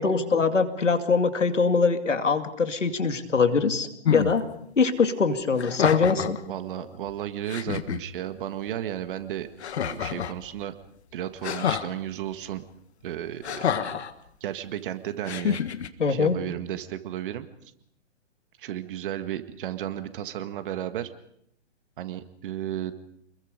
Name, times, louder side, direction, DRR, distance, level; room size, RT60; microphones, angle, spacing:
voice 1, 0.0-4.5 4.8-6.4 16.0-16.4, left 5 dB, 85° left, 8 dB, 2.5 m, -23 dB
sound 1, 4.0-4.3 5.6-6.4 7.1-7.2 7.5-8.0 9.6-10.4 11.4-11.9 13.4-14.1 15.2-15.9, left 8 dB, 65° left, 1.6 m, -27 dB
voice 2, 6.5-9.5 9.7-10.7 11.1-12.6 13.0-14.0 14.4-15.6 16.1-17.5 18.6-21.1 22.0-22.9, right 11 dB, 45° right, 10 dB, 1.8 m, -33 dB
28.5 x 21.5 x 5.2 m, 0.73 s
hypercardioid pair, 135°, 36 cm